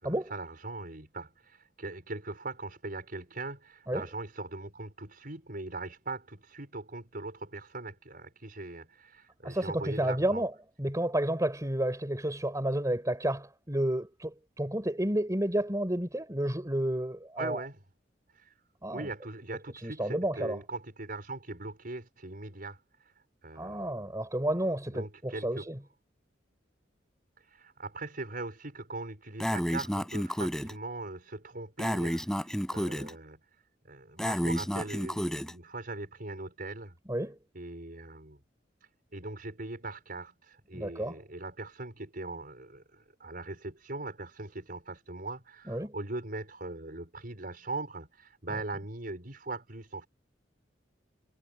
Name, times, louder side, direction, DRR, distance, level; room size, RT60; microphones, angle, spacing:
voice 1, 0.0-10.4 17.4-17.8 18.3-18.5 18.9-23.1 23.4-24.1 24.9-25.7 27.4-33.4 33.9-37.0 37.5-38.4 39.1-50.1, right 2 dB, 50° right, 5.4 m, -40 dB
voice 2, 9.4-10.5 10.8-17.6 18.8-19.1 19.8-20.6 23.6-25.8 37.1-37.4 40.7-41.2 45.7-45.9, right 1 dB, 20° right, 4.9 m, -31 dB
Breathing, 29.4-30.7 31.8-33.1 34.2-35.5, equal, 5° left, 5.4 m, -31 dB
head